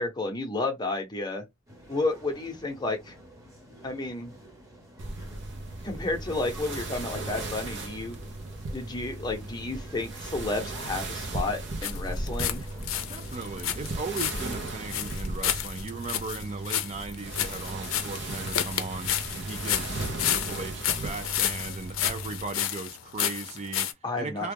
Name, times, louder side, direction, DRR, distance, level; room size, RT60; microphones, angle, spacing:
voice 1, 0.0-1.4 1.9-3.2 3.8-4.3 5.8-8.2 8.7-12.7 24.0-24.5, left 2 dB, 20° left, 0.8 m, -31 dB
sound 1, 1.7-15.0, equal, 15° right, 1.0 m, -50 dB
sound 2, 5.0-22.6, right 2 dB, 60° right, 0.8 m, -36 dB
sound 3, 11.8-12.6 12.8-23.9, left 11 dB, 75° left, 0.5 m, -31 dB
voice 2, 13.1-24.5, right 3 dB, 30° right, 0.4 m, -37 dB
2.9 x 2.3 x 3.4 m
head